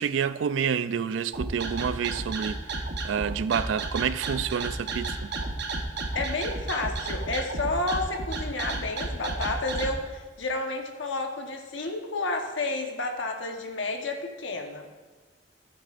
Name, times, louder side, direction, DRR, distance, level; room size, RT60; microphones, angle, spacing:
voice 1, 0.0-2.6 3.0-5.3, right 7 dB, 90° right, 0.4 m, -28 dB
sound 1, 1.3-9.9, right 3 dB, 60° right, 0.9 m, -32 dB
voice 2, 6.1-14.9, left 2 dB, 80° left, 1.1 m, -31 dB
14.5 x 8.7 x 2.5 m
head